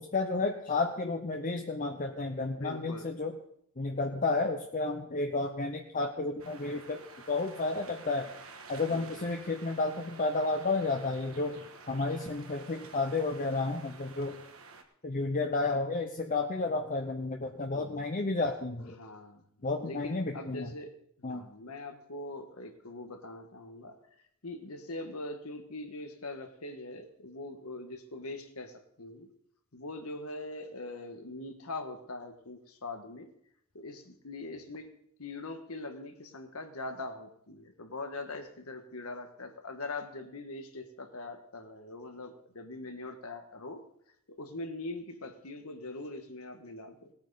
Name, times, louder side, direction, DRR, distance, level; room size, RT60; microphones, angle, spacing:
voice 1, 0.0-3.4 3.8-8.3 8.7-14.4 15.0-19.0 19.6-20.7 21.2-21.5, left 3 dB, 40° left, 4 dB, 0.7 m, -32 dB
voice 2, 2.5-3.1 6.6-6.7 8.9-9.3 17.7-18.1 18.9-19.4 19.8-20.9 21.2-24.0 24.4-29.3 29.7-33.3 33.7-34.9 35.2-43.8 44.3-47.1, left 2 dB, 85° left, 6 dB, 1.4 m, -42 dB
sound 1, 6.4-14.8, right 4 dB, 75° right, 1.3 m, -51 dB
18.0 x 8.8 x 4.0 m, 0.70 s
head